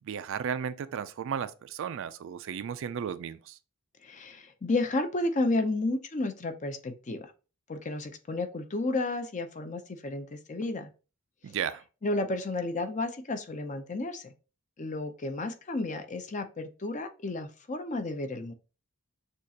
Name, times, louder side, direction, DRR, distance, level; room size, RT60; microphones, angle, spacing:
voice 1, 0.0-3.6 11.4-11.8, right 7 dB, 60° right, 0.3 m, -34 dB
voice 2, 4.0-7.3 7.7-10.9 12.0-14.3 14.8-18.5, left 2 dB, 35° left, 0.6 m, -32 dB
6.5 x 2.4 x 2.8 m
head